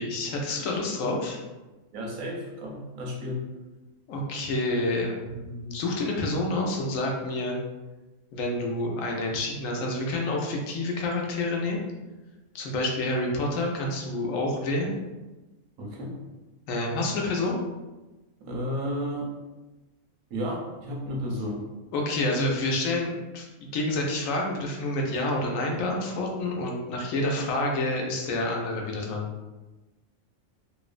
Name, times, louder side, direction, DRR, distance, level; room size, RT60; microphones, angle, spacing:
voice 1, 0.0-1.4 4.1-7.6 8.3-11.8 12.5-14.9 16.7-17.6 21.9-29.3, left 2 dB, 80° left, 0 dB, 1.0 m, -28 dB
voice 2, 1.9-3.4 15.8-16.1 18.4-19.3 20.3-21.6, equal, 85° right, -1 dB, 1.1 m, -32 dB
3.0 x 2.0 x 2.4 m, 1.1 s
omnidirectional pair, 1.4 m